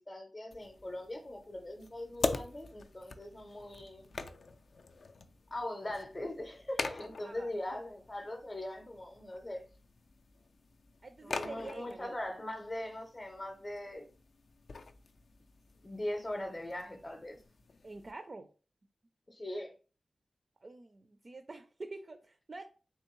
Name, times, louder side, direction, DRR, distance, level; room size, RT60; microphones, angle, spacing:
voice 1, 0.0-4.2 5.5-9.6 11.2-14.0 15.8-17.4 19.3-19.7, left 1 dB, 25° left, 0.6 m, -41 dB
sound 1, 0.5-18.1, left 4 dB, 65° left, 0.3 m, -44 dB
voice 2, 7.2-7.8 11.0-12.3 17.8-18.5 20.6-22.7, right 2 dB, 40° right, 0.3 m, -47 dB
3.4 x 3.0 x 3.0 m
wide cardioid pair, 90°, 0 cm